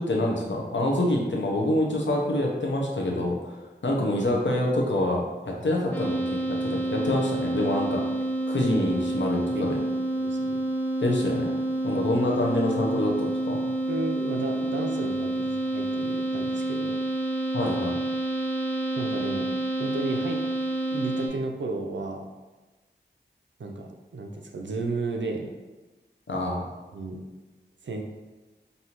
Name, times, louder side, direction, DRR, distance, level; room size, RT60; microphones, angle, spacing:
voice 1, 0.0-3.5 3.8-8.0 8.5-9.7 11.0-11.5 11.8-13.6 17.5-17.9 26.3-26.6, left 1 dB, 85° left, -1 dB, 0.8 m, -26 dB
sound 1, 5.9-21.3, right 1 dB, 10° left, 0.8 m, -28 dB
voice 2, 9.5-9.9 10.2-10.6 13.9-17.0 19.0-19.5 19.8-20.4 20.9-22.3 23.6-25.5 26.9-27.2 27.8-28.0, right 3 dB, 90° right, 2 dB, 0.5 m, -33 dB
5.4 x 2.7 x 3.0 m, 1.2 s
wide cardioid pair, 60°, 18 cm